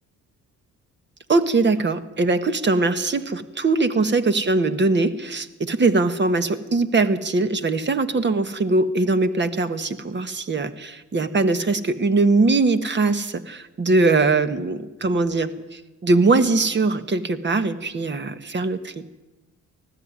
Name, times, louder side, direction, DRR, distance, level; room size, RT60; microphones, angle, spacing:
voice 1, 1.3-19.1, right 3 dB, 35° right, 11 dB, 1.6 m, -21 dB
19.5 x 14.0 x 9.7 m, 1.1 s
cardioid pair, 90°, 30 cm